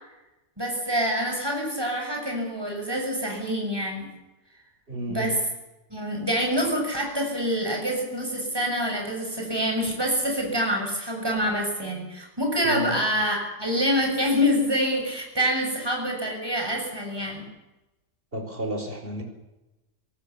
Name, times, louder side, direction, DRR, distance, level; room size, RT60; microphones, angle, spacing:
voice 1, 0.6-4.1 5.1-5.4 5.9-17.5, equal, 15° right, 1 dB, 6.9 m, -26 dB
voice 2, 4.9-5.4 12.6-12.9 18.3-19.2, right 1 dB, 35° right, 4 dB, 5.5 m, -32 dB
24.5 x 18.5 x 7.2 m, 1.0 s
omnidirectional pair, 1.7 m